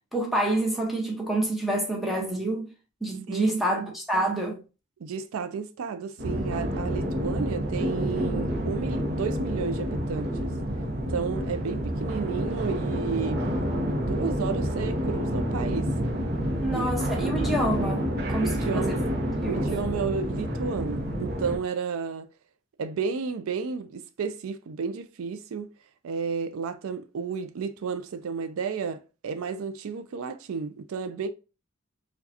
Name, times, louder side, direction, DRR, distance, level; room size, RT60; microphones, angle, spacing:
voice 1, 0.1-2.7 3.0-4.6 16.6-18.9 19.2-19.7, right 1 dB, ahead, 0.9 m, -28 dB
voice 2, 3.3-3.8 5.0-10.5 11.1-13.4 14.0-15.9 16.7-17.4 18.4-19.0 19.5-22.3 22.8-25.7 26.0-31.3, right 5 dB, 80° right, 0.4 m, -32 dB
sound 1, 6.2-21.6, equal, 50° right, 0.7 m, -28 dB
4.6 x 2.3 x 2.7 m
head